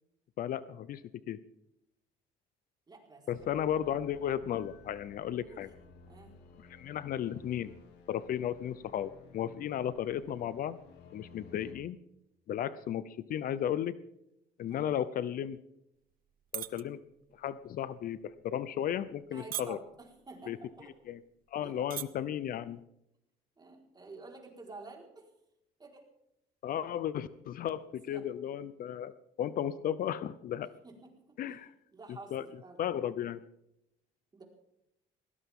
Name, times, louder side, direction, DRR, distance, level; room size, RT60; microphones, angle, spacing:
voice 1, 0.4-1.4 3.3-5.7 6.6-7.7 8.1-10.8 11.1-12.0 12.5-14.0 14.6-15.6 16.5-17.0 17.3-19.8 20.5-20.6 21.1-21.2 21.5-22.8 26.6-30.7 31.4-31.7 32.3-32.4 32.8-33.4, left 10 dB, 60° left, 16 dB, 0.7 m, -34 dB
voice 2, 2.9-3.6 5.4-5.6 6.0-6.3 14.7-14.9 19.3-20.9 21.6-21.7 23.6-25.3 25.8-26.1 28.1-28.2 30.8-31.6 31.9-32.9 34.3-34.4, right 3 dB, 25° right, 1 dB, 4.7 m, -50 dB
sound 1, 3.4-11.7, left 4 dB, 85° left, 2.9 m, -56 dB
sound 2, 16.3-16.8 17.2-17.5 18.1-18.3 19.0-19.3 19.5-20.0 20.8-20.9 21.1-21.2 21.7-22.0 22.4-22.7, right 12 dB, 60° right, 0.9 m, -37 dB
19.5 x 17.5 x 3.8 m, 0.81 s
cardioid pair, 110°, 17 cm